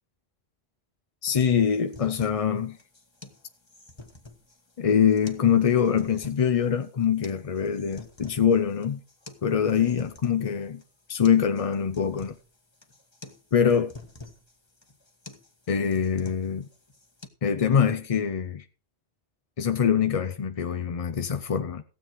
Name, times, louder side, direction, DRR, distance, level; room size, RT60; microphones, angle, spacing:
voice 1, 1.2-2.8 4.8-9.0 9.4-10.8 11.1-12.4 13.5-13.9 15.7-16.7 17.4-18.6 19.6-21.8, left 7 dB, 40° left, 0.6 m, -24 dB
sound 1, 1.3-17.3, left 3 dB, 25° left, 1.3 m, -48 dB
15.5 x 8.1 x 4.6 m
omnidirectional pair, 1.1 m